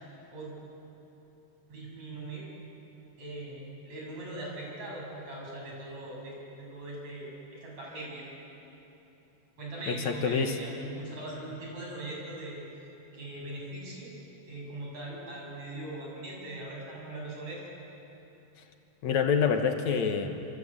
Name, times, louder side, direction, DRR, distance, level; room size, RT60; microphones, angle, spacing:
voice 1, 1.7-2.4 3.2-8.3 9.6-12.6 13.1-14.1 14.5-17.6, right 1 dB, 60° right, -3 dB, 8.2 m, -40 dB
voice 2, 9.9-10.6 19.0-20.5, left 6 dB, 70° left, 5 dB, 2.6 m, -27 dB
27.5 x 24.0 x 8.7 m, 3.0 s
omnidirectional pair, 3.5 m